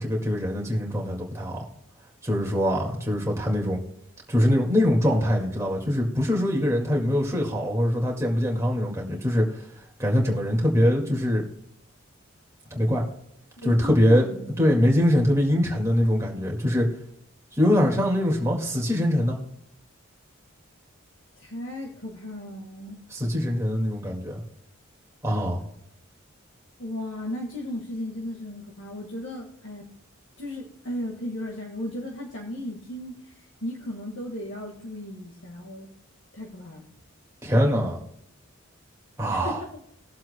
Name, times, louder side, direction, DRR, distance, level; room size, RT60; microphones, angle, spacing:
voice 1, 0.0-1.6 2.2-3.8 4.3-9.5 10.0-11.4 12.7-13.0 13.6-14.3 14.6-16.9 17.6-19.4 23.1-24.4 25.2-25.6 37.4-38.0 39.2-39.6, equal, 15° right, -1 dB, 1.9 m, -23 dB
voice 2, 13.6-15.1 21.4-23.0 26.8-29.9 30.4-35.9 36.3-36.9 39.3-39.8, left 1 dB, 70° left, 0 dB, 1.7 m, -36 dB
20.5 x 7.5 x 2.2 m, 0.74 s
head